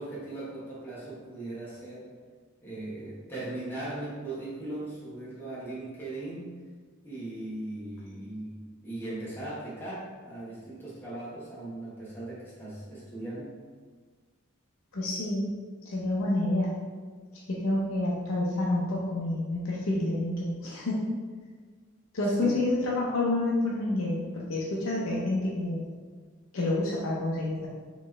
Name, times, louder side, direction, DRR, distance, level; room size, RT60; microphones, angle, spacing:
voice 1, 0.0-2.1 2.6-6.6 7.0-8.6 8.8-13.5 22.4-22.6, right 2 dB, 10° left, -8 dB, 1.1 m, -38 dB
voice 2, 14.9-15.5 15.8-16.8 17.5-21.0 22.1-25.9 26.5-27.7, left 2 dB, 90° left, -4 dB, 0.6 m, -28 dB
4.3 x 3.1 x 3.2 m, 1.5 s
head